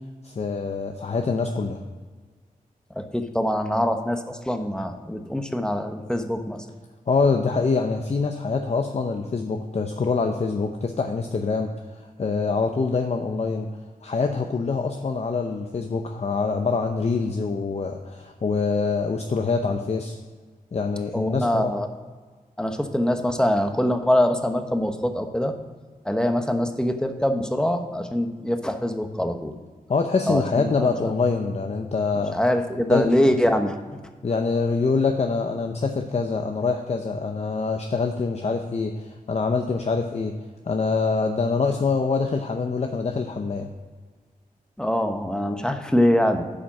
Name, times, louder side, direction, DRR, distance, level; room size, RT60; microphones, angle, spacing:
voice 1, 0.2-1.8 7.1-13.7 14.0-20.2 20.7-21.7 29.9-32.4 32.9-33.4 34.2-40.3 40.6-43.7, left 4 dB, 45° left, 4 dB, 0.7 m, -25 dB
voice 2, 3.0-6.6 21.1-21.9 22.6-25.5 26.0-29.5 30.3-31.1 32.3-34.0 44.8-46.5, left 1 dB, 5° left, 6 dB, 1.0 m, -24 dB
11.0 x 5.1 x 6.0 m, 1.4 s
cardioid pair, 75°, 15 cm